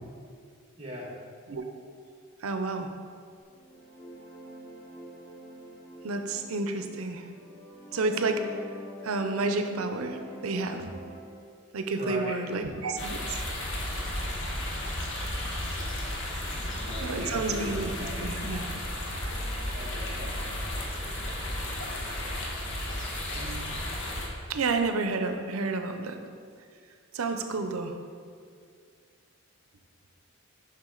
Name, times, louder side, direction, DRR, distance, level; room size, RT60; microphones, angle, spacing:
voice 1, 0.7-1.1 11.9-12.7 16.5-18.2 19.7-21.1 27.5-27.6, equal, 25° right, -4 dB, 1.3 m, -40 dB
voice 2, 2.4-2.9 6.0-7.3 7.9-8.6 9.0-10.9 11.7-13.4 17.0-18.7 19.1-19.2 23.4-23.8 24.2-24.3 24.5-26.2 27.1-28.0, right 3 dB, 90° right, 7 dB, 0.6 m, -30 dB
sound 1, 3.5-11.4, equal, 15° left, 1.1 m, -45 dB
sound 2, 13.0-24.3, left 1 dB, 60° left, 1.1 m, -33 dB
7.3 x 5.7 x 3.8 m, 2.2 s
head